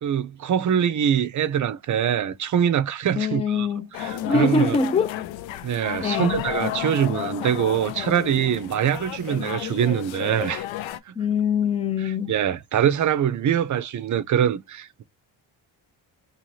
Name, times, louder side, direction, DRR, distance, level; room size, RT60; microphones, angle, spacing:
voice 1, 0.0-3.7 4.0-4.8 5.6-10.6 11.1-11.2 12.3-15.0, right 9 dB, 40° right, 0.5 m, -23 dB
voice 2, 3.1-3.9 4.2-5.1 6.0-6.5 11.2-12.3, left 5 dB, 15° left, 0.3 m, -23 dB
sound 1, 3.9-11.0, left 13 dB, 80° left, 0.5 m, -32 dB
2.7 x 2.5 x 3.1 m
cardioid pair, 75°, 45 cm